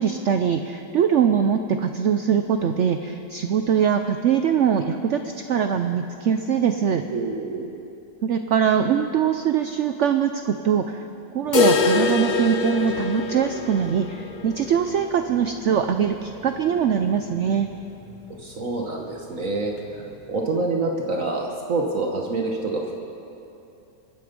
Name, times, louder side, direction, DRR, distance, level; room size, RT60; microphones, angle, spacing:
voice 1, 0.0-7.0 8.2-11.0 11.3-17.7, right 8 dB, 80° right, 7 dB, 0.6 m, -22 dB
voice 2, 7.1-7.8 18.4-22.9, right 3 dB, 50° right, 0 dB, 1.4 m, -27 dB
sound 1, 11.5-17.3 17.6-17.7 18.1-18.2 18.7-18.8 19.7-19.8, left 5 dB, 70° left, 0.4 m, -25 dB
24.0 x 9.4 x 5.2 m, 2.8 s
omnidirectional pair, 1.9 m